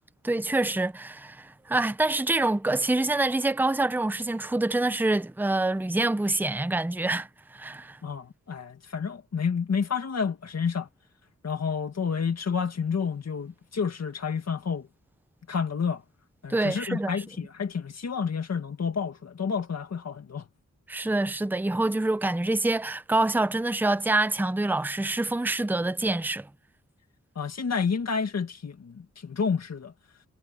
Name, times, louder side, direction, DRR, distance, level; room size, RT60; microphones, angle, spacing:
voice 1, 0.2-7.3 7.5-8.0 16.5-17.2 20.9-26.5, right 2 dB, 5° right, 0.7 m, -26 dB
voice 2, 8.0-10.9 11.4-14.9 15.5-16.0 16.4-20.5 27.4-29.9, left 6 dB, 60° left, 1.8 m, -30 dB
wide cardioid pair, 120°, 29 cm